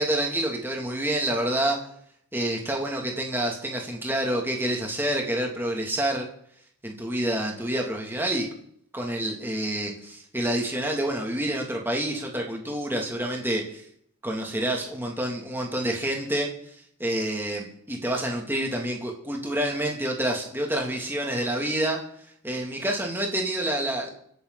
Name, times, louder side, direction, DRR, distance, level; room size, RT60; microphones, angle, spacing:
voice 1, 0.0-1.8 2.3-6.3 6.8-8.5 8.9-13.8 14.2-16.5 17.0-22.0 22.4-24.1, right 1 dB, 10° right, 0 dB, 2.9 m, -28 dB
26.0 x 10.5 x 4.2 m, 0.65 s
head